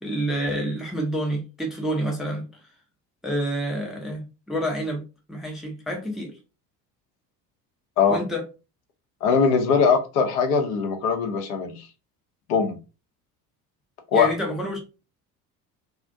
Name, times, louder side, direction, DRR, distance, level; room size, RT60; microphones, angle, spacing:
voice 1, 0.0-2.5 3.2-5.0 5.3-6.3 8.1-8.4 14.1-14.8, right 1 dB, ahead, 0.5 m, -28 dB
voice 2, 9.2-11.9 12.5-12.8 14.1-14.3, left 5 dB, 65° left, 0.7 m, -21 dB
2.4 x 2.1 x 2.5 m
figure-of-eight pair, 60°, 48 cm